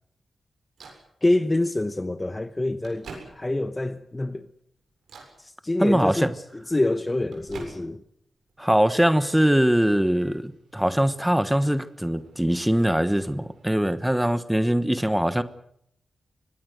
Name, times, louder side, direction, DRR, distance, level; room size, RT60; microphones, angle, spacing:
Microwave oven, 0.8-1.1 2.0-2.1 2.6-3.7 4.2-4.6 5.0-5.4 6.6-8.1 8.5-9.6 10.1-14.4, right 4 dB, 80° right, 7.5 m, -48 dB
voice 1, 1.2-4.5 5.4-8.0, left 2 dB, 15° left, 0.8 m, -26 dB
voice 2, 5.8-6.3 8.6-15.4, equal, 5° right, 1.1 m, -22 dB
24.0 x 19.5 x 7.9 m
wide cardioid pair, 175°, 0 cm